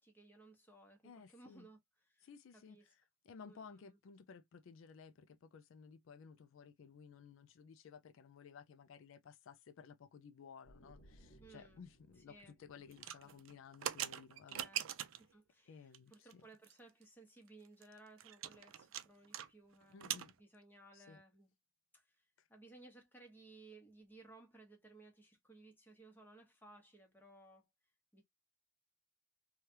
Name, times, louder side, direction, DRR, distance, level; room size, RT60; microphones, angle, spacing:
voice 1, 0.0-2.3 2.5-2.9 3.4-4.0 11.4-11.8 12.3-12.6 12.9-13.0 13.2-13.4 14.5-14.9 15.1-20.0 20.4-21.5 21.9-27.7 28.1-28.2, right 2 dB, 10° left, 1.0 m, -61 dB
voice 2, 1.0-1.7 2.2-14.7 15.7-16.4 19.9-20.3 20.9-21.2 22.4-22.5, left 6 dB, 65° left, 0.3 m, -57 dB
sound 1, 10.6-14.3, right 1 dB, 40° left, 0.9 m, -65 dB
sound 2, 12.9-15.3 15.9-16.3 16.6-16.7 17.0-17.1 17.5-19.5 19.7-20.3, right 11 dB, 65° right, 0.4 m, -42 dB
3.2 x 2.3 x 2.7 m
head